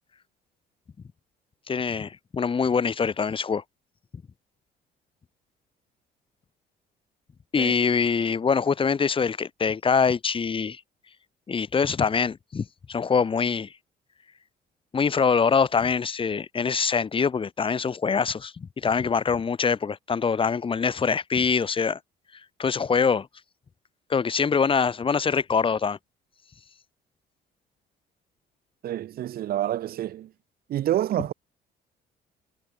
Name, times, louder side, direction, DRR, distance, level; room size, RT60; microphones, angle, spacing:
voice 1, 1.7-3.6 7.5-10.8 11.5-13.7 14.9-22.0 22.6-23.3 24.1-26.0, left 5 dB, 30° left, 3.4 m, -24 dB
voice 2, 28.8-30.3 30.7-31.3, right 12 dB, 65° right, 2.6 m, -28 dB
cardioid pair, 110°, 17 cm